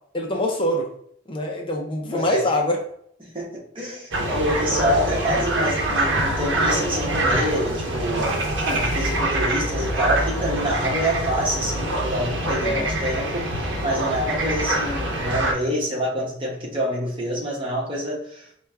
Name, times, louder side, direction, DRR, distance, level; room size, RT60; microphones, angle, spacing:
voice 1, 0.1-1.0 1.3-2.8 12.6-12.9, left 1 dB, 30° left, 1 dB, 0.6 m, -24 dB
voice 2, 3.2-8.3 8.7-18.5, equal, 30° right, -3 dB, 1.1 m, -27 dB
sound 1, 4.1-15.5, right 1 dB, 75° right, 0.8 m, -24 dB
4.4 x 2.3 x 3.3 m, 0.65 s
head